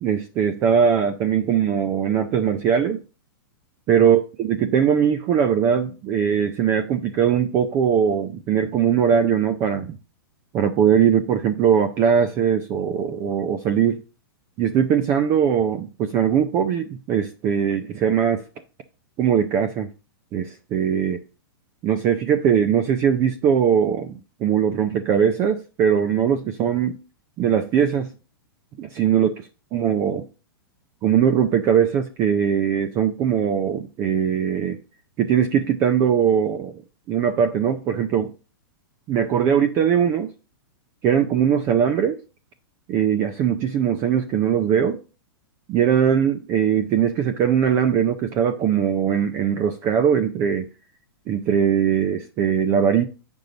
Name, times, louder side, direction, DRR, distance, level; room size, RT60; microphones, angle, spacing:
voice 1, 0.0-3.0 3.9-10.0 10.5-14.0 14.6-18.4 19.2-19.9 20.3-21.2 21.8-27.0 27.4-28.1 28.8-29.3 29.7-30.3 31.0-34.8 35.2-36.8 37.1-38.3 39.1-40.3 41.0-42.2 42.9-45.0 45.7-50.7 51.3-53.1, right 8 dB, 20° right, 0.4 m, -20 dB
7.9 x 5.3 x 3.9 m
hypercardioid pair, 160°, 13 cm